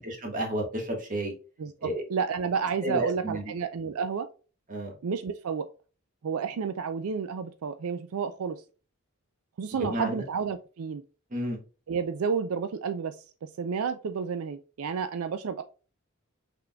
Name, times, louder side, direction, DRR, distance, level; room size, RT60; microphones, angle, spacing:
voice 1, 0.2-1.3 1.8-2.0 2.8-3.4 4.7-4.9 9.8-10.2 11.3-11.6, right 1 dB, 40° right, 1.4 m, -31 dB
voice 2, 1.6-4.3 5.0-5.7 6.2-8.6 9.6-11.0 11.9-13.2 13.4-15.6, right 6 dB, 85° right, 0.4 m, -31 dB
5.8 x 3.6 x 2.2 m
head